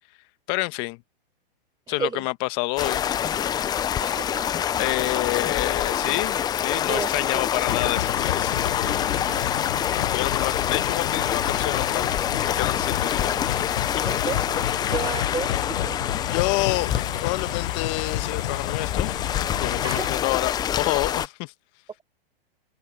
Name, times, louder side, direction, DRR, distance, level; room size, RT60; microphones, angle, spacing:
voice 1, 0.5-1.0 1.9-3.1 4.8-9.4 10.1-12.1 12.5-13.3 13.9-14.1 16.3-19.2 19.6-21.5, left 24 dB, 35° left, 1.4 m, -28 dB
voice 2, 1.9-2.3 4.0-4.5 6.1-6.2 6.7-7.4 9.2-9.4 13.3-13.5 14.0-16.0 19.8-20.3, right 6 dB, 15° right, 4.4 m, -33 dB
sound 1, 2.8-21.3, left 9 dB, 15° left, 0.5 m, -26 dB
sound 2, 7.7-20.1, left 15 dB, 60° left, 1.1 m, -30 dB
open air
hypercardioid pair, 135°, 30 cm